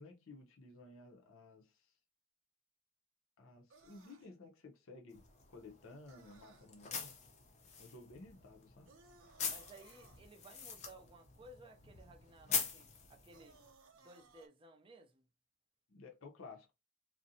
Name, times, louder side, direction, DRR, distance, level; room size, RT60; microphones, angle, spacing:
voice 1, 0.0-1.9 3.4-7.2 7.8-8.9 15.9-16.7, left 3 dB, 75° left, 0.6 m, -55 dB
sound 1, 3.7-4.3 6.1-6.7 8.8-10.2 13.3-14.5, right 3 dB, 85° right, 0.6 m, -63 dB
sound 2, 5.1-13.7, left 6 dB, 35° left, 0.5 m, -44 dB
voice 2, 9.5-13.6 13.9-15.3, right 2 dB, 25° right, 0.4 m, -58 dB
2.5 x 2.1 x 2.7 m
head